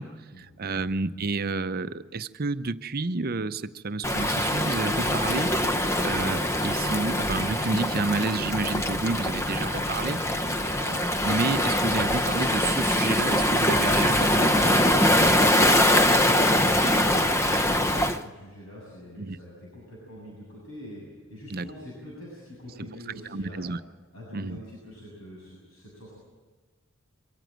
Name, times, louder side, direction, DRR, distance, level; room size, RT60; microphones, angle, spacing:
voice 1, 0.0-5.6 6.0-10.2 10.8-14.5 19.2-19.4 21.5-21.7 22.8-23.8 24.3-24.6, right 3 dB, 45° right, 12 dB, 0.7 m, -30 dB
Waves surf, 4.0-18.2, left 1 dB, 15° left, 0.7 m, -23 dB
voice 2, 10.2-10.8 16.1-21.0 21.3-23.6 24.1-26.1, equal, 75° left, -5 dB, 7.4 m, -44 dB
24.0 x 14.5 x 9.2 m, 1.4 s
head